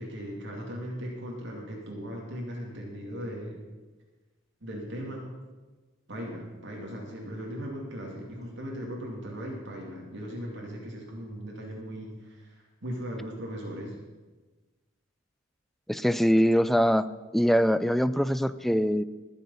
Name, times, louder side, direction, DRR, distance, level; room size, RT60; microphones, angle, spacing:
voice 1, 0.0-3.6 4.6-5.3 6.1-13.9, equal, 60° right, -2 dB, 2.6 m, -38 dB
voice 2, 15.9-17.1 17.3-19.0, equal, ahead, 14 dB, 0.4 m, -23 dB
20.5 x 7.0 x 5.6 m, 1.3 s
head